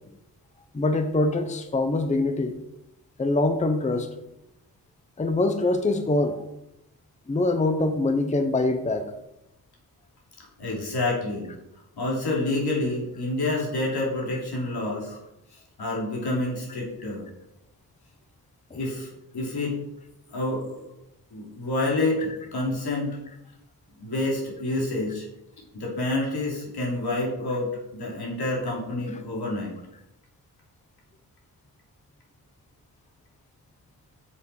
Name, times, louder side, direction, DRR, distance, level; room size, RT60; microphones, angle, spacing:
voice 1, 0.7-2.5 3.2-4.1 5.2-6.4 7.3-9.1, left 2 dB, 20° left, 8 dB, 0.6 m, -24 dB
voice 2, 10.6-11.5 12.0-15.2 15.5-17.3 18.7-19.8 20.3-20.9 21.3-23.2 24.0-25.3 25.7-29.7, left 2 dB, 85° left, -2 dB, 3.1 m, -28 dB
8.3 x 7.0 x 4.7 m, 0.86 s
wide cardioid pair, 160°, 38 cm